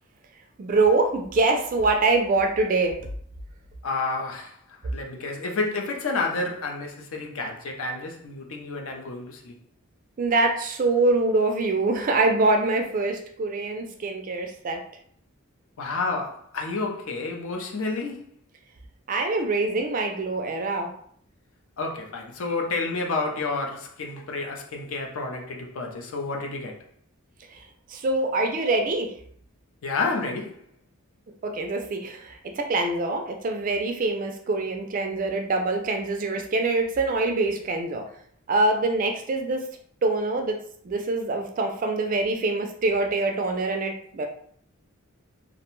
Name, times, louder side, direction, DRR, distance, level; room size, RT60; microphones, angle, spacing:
voice 1, 0.6-3.1 10.2-14.8 19.1-20.9 27.5-27.6 27.9-29.1 31.4-38.0 38.5-39.6 40.0-40.6 40.8-44.3, right 3 dB, 35° right, 0.3 m, -24 dB
voice 2, 3.8-4.6 4.8-9.6 15.8-18.2 21.8-26.8 29.8-30.6, left 3 dB, 65° left, 0.5 m, -30 dB
2.5 x 2.1 x 3.0 m
head